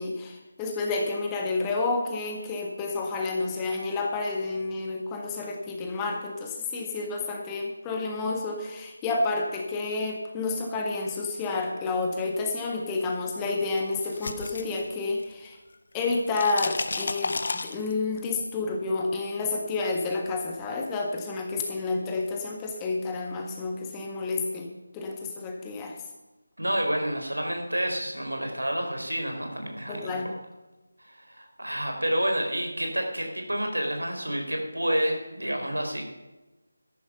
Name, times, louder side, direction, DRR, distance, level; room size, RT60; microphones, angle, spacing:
voice 1, 0.0-15.6 15.9-17.4 17.6-24.7 24.9-26.0 29.9-30.3, left 3 dB, 10° left, 1 dB, 1.6 m, -30 dB
sound 1, 13.8-15.5 15.7-18.2, left 3 dB, 50° left, 1.1 m, -32 dB
voice 2, 26.6-30.1 31.0-36.0, equal, 85° right, 3 dB, 4.3 m, -29 dB
13.5 x 11.0 x 5.7 m, 1.1 s
figure-of-eight pair, 160°, 0 cm